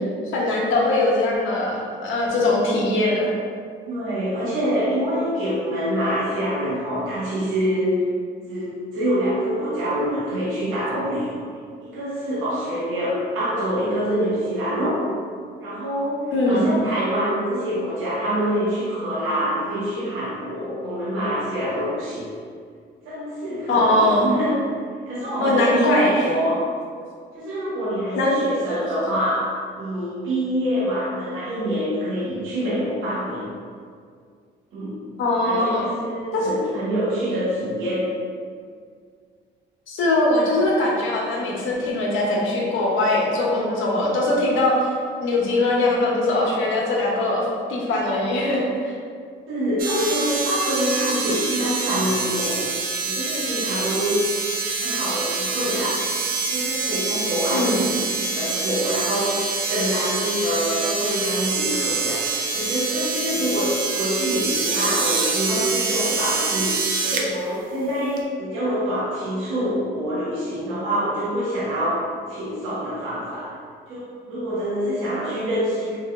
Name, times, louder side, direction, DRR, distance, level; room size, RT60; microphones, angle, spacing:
voice 1, 0.3-3.3 16.3-16.7 23.7-24.3 25.4-26.3 28.1-28.4 35.2-35.9 36.3-36.5 39.9-44.9 45.2-48.9 57.5-57.8, left 2 dB, 80° left, -3 dB, 0.6 m, -21 dB
voice 2, 3.9-8.1 8.5-11.5 11.8-15.1 15.6-22.3 23.0-24.6 25.1-26.7 27.3-33.5 34.7-35.0 35.4-38.1 49.5-52.6 53.0-54.3 54.8-56.0 56.5-73.5 73.9-76.0, equal, 85° right, -8 dB, 0.8 m, -25 dB
sound 1, 49.8-67.3 68.2-68.3, right 4 dB, 45° right, 0.4 m, -26 dB
3.2 x 2.2 x 2.2 m, 2.1 s
cardioid pair, 90°, 20 cm